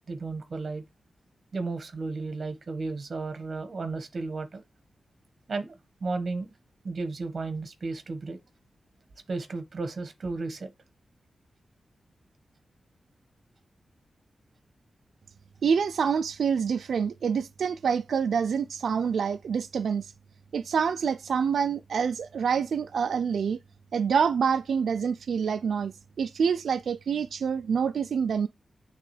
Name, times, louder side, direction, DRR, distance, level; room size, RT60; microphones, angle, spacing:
voice 1, 0.1-0.8 1.5-4.6 5.5-5.7 6.0-6.5 6.8-8.4 9.3-10.7, right 3 dB, 45° right, 1.3 m, -33 dB
voice 2, 15.6-20.1 20.5-23.6 23.9-28.5, right 6 dB, 80° right, 0.3 m, -27 dB
9.1 x 3.7 x 3.2 m
wide cardioid pair, 165°, 0 cm